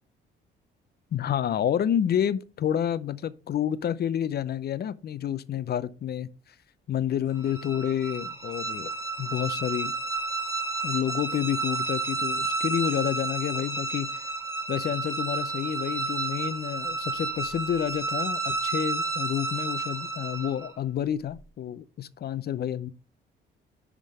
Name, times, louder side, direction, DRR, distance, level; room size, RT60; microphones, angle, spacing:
voice 1, 1.1-6.3 6.9-8.9 9.2-9.9 10.8-14.3 14.7-22.9, left 10 dB, 55° left, 0.6 m, -29 dB
sound 1, 7.4-20.7, right 3 dB, 15° right, 1.7 m, -31 dB
10.5 x 3.7 x 4.9 m
cardioid pair, 90°, 20 cm